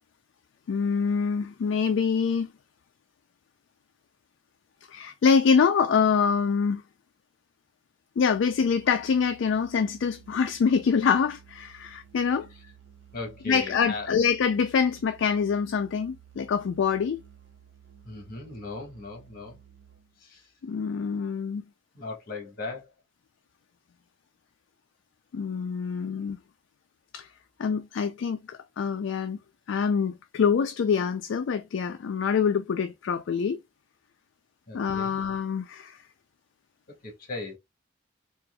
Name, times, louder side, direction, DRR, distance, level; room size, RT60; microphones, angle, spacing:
voice 1, 0.7-2.5 4.9-6.8 8.2-12.5 13.5-17.2 20.6-21.6 25.3-26.4 27.1-27.3 27.6-29.4 29.7-33.6 34.7-36.0, left 6 dB, 70° left, 0.3 m, -25 dB
Musical instrument, 8.2-20.3, right 9 dB, 65° right, 0.5 m, -54 dB
voice 2, 13.1-14.1 18.1-19.6 20.3-20.4 21.9-22.8 34.7-35.2 37.3-37.6, left 3 dB, 50° left, 1.4 m, -37 dB
4.2 x 2.4 x 2.2 m
head